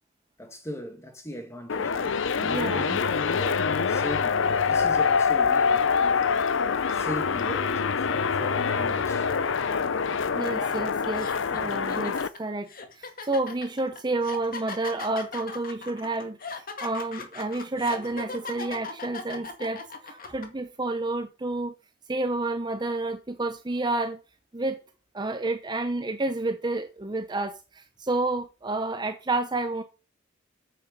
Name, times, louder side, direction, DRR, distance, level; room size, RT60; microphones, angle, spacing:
voice 1, 0.4-9.3 10.6-10.7, left 1 dB, 15° left, 1.9 m, -40 dB
sound 1, 1.7-12.3, left 5 dB, 65° left, 0.6 m, -25 dB
voice 2, 2.4-3.0 10.3-12.7 13.0-21.7 22.1-24.2 24.5-24.8 25.1-29.8, right 2 dB, 20° right, 0.7 m, -30 dB
sound 2, 10.5-10.6 11.1-20.5, left 4 dB, 45° left, 1.9 m, -38 dB
9.3 x 8.0 x 5.3 m
head